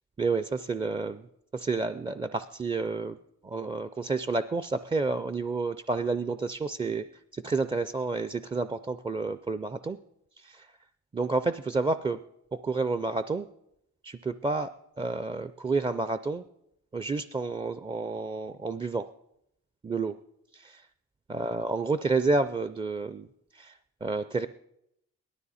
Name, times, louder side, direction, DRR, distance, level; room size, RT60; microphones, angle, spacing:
voice 1, 0.2-1.3 1.5-3.2 3.4-7.1 7.3-10.0 10.4-10.7 11.1-12.2 12.5-13.5 14.0-16.5 16.9-19.1 19.8-20.2 20.5-20.9 21.3-23.3 23.5-24.5, right 3 dB, 15° right, 12 dB, 0.4 m, -30 dB
17.5 x 12.5 x 4.2 m, 0.79 s
cardioid pair, 90°, 30 cm